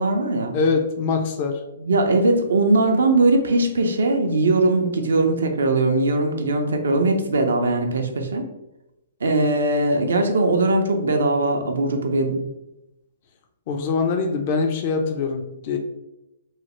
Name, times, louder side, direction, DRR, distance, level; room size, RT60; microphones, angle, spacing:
voice 1, 0.0-0.6 1.8-8.5 9.2-12.5, right 2 dB, 80° right, 4 dB, 0.5 m, -20 dB
voice 2, 0.5-1.6 13.7-15.8, left 4 dB, 45° left, 5 dB, 0.4 m, -23 dB
3.1 x 2.0 x 2.9 m, 0.91 s
hypercardioid pair, 130°, 0 cm